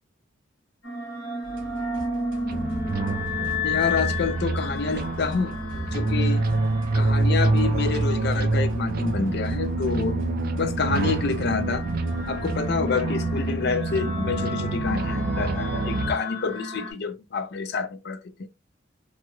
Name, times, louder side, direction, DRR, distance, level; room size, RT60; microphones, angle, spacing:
sound 1, 0.8-16.9, left 2 dB, 90° left, 1.1 m, -33 dB
sound 2, 1.4-12.8, equal, 80° right, 0.8 m, -41 dB
sound 3, 2.5-16.1, right 2 dB, 50° right, 0.4 m, -26 dB
voice 1, 3.6-6.4 6.9-10.2 10.5-11.8 12.3-18.5, left 5 dB, 60° left, 0.4 m, -28 dB
2.7 x 2.3 x 2.9 m
head